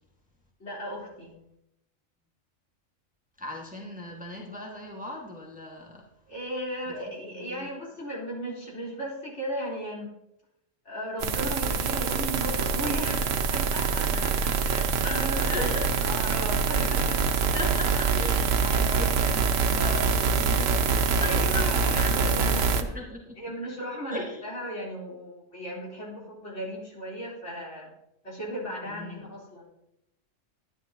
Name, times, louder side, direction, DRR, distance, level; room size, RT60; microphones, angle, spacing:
voice 1, 0.6-1.3 6.3-10.2 10.8-15.7 16.0-17.2 21.2-23.1 23.4-27.9 28.2-29.6, equal, 65° left, -5 dB, 4.1 m, -36 dB
voice 2, 3.4-6.1 6.9-7.7 14.1-14.5 15.0-15.9 17.5-21.5 21.9-22.1 22.9-23.7 24.1-24.4 28.8-29.2, left 1 dB, 5° right, -1 dB, 1.6 m, -37 dB
sound 1, 11.2-22.8, right 5 dB, 90° right, 1.2 m, -25 dB
12.5 x 10.0 x 2.9 m, 0.81 s
omnidirectional pair, 1.3 m